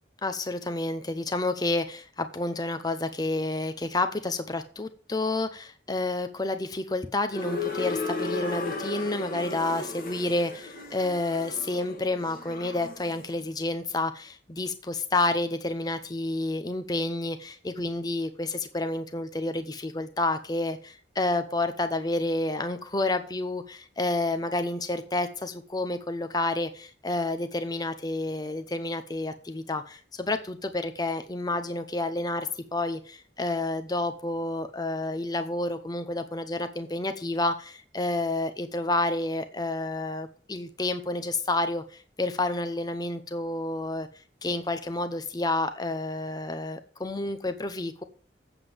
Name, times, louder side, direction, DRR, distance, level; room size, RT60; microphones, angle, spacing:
voice 1, 0.2-48.0, left 2 dB, 20° left, 9 dB, 0.7 m, -30 dB
sound 1, 7.3-13.2, left 3 dB, 50° left, 1.7 m, -35 dB
8.0 x 7.4 x 7.6 m, 0.42 s
head